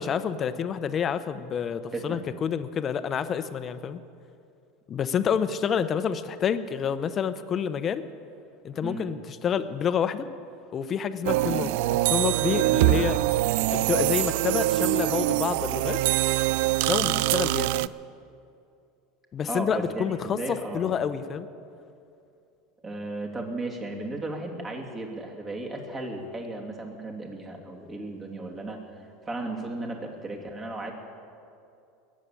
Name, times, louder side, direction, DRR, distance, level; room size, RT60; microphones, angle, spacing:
voice 1, 0.0-4.0 4.9-8.1 8.6-10.3 10.7-13.2 13.7-16.0 16.9-17.9 19.3-21.5, left 7 dB, 35° left, 12 dB, 0.9 m, -28 dB
voice 2, 1.9-2.2 8.8-9.1 11.5-11.7 17.0-17.2 19.5-20.9 22.8-28.8 29.2-30.9, right 2 dB, 25° right, 0 dB, 2.8 m, -35 dB
sound 1, 11.2-17.9, right 16 dB, 70° right, 0.3 m, -24 dB
21.0 x 7.6 x 8.4 m, 2.5 s
supercardioid pair, 105°, 0 cm